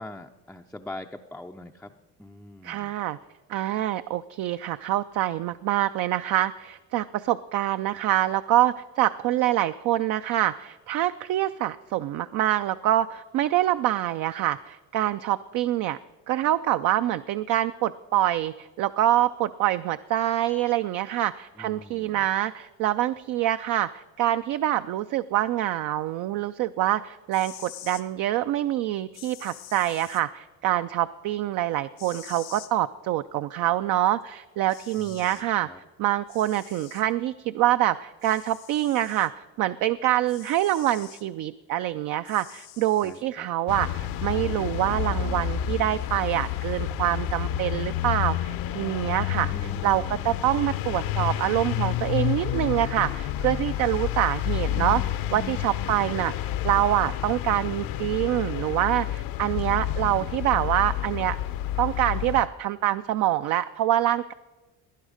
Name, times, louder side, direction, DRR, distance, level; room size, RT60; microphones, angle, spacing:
voice 1, 0.0-1.9 2.2-2.9 21.6-22.3 35.0-35.8 43.0-43.5 49.5-50.3, left 1 dB, 5° left, 3 dB, 0.4 m, -42 dB
voice 2, 2.6-3.2 3.5-16.0 16.3-35.7 36.0-49.5 49.8-61.4 61.8-64.3, right 13 dB, 60° right, 12 dB, 0.5 m, -25 dB
sound 1, 27.2-28.0 29.1-30.2 32.0-32.7 34.2-34.3 34.7-35.5 36.3-37.0 38.2-39.3 40.3-41.2 42.2-43.2, left 14 dB, 85° left, 1.1 m, -46 dB
sound 2, 43.7-62.5, left 11 dB, 70° left, 0.8 m, -29 dB
18.0 x 10.0 x 5.0 m, 1.2 s
cardioid pair, 100°, 37 cm